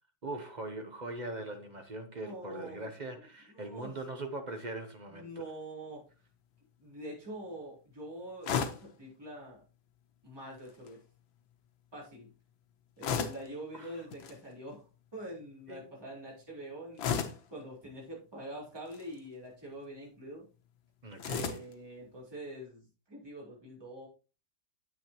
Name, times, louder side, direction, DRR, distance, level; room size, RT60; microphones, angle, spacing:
voice 1, 0.2-5.3 13.7-13.9 15.7-15.8 21.0-21.6, right 2 dB, 60° right, 0.4 m, -41 dB
voice 2, 2.2-2.9 3.5-4.0 5.1-6.0 6.8-9.6 10.2-11.0 11.9-12.3 13.0-14.9 15.1-17.1 17.5-20.4 21.3-24.1, right 1 dB, 10° right, 3.9 m, -45 dB
sound 1, 8.4-8.9 10.6-10.9 13.0-13.5 14.1-14.4 17.0-17.5 18.8-19.2 21.2-21.7, left 7 dB, 90° left, 1.8 m, -34 dB
9.5 x 8.0 x 2.9 m
omnidirectional pair, 2.0 m